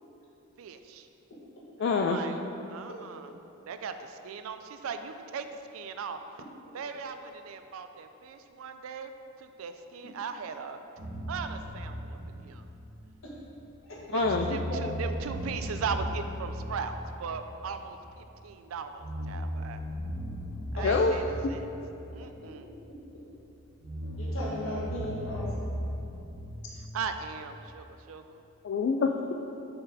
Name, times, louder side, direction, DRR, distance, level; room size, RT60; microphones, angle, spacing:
voice 1, 0.6-1.1 1.8-2.4 2.7-3.3 3.6-5.5 5.7-6.2 6.7-9.1 9.4-10.8 11.3-12.6 14.1-19.8 20.7-21.7 22.1-22.7 26.9-28.4, right 5 dB, 80° right, 8 dB, 0.4 m, -38 dB
voice 2, 1.8-2.2 14.1-14.5 20.8-21.1 21.4-21.5 28.6-29.3, left 4 dB, 55° left, 3 dB, 0.3 m, -26 dB
sound 1, 11.0-13.8 14.2-18.4 19.0-23.1 23.8-27.8, equal, 50° right, 1.1 m, -37 dB
voice 3, 14.7-15.0 20.8-21.0 24.0-25.7, left 1 dB, 70° left, -5 dB, 1.4 m, -36 dB
6.6 x 4.3 x 4.0 m, 2.8 s
head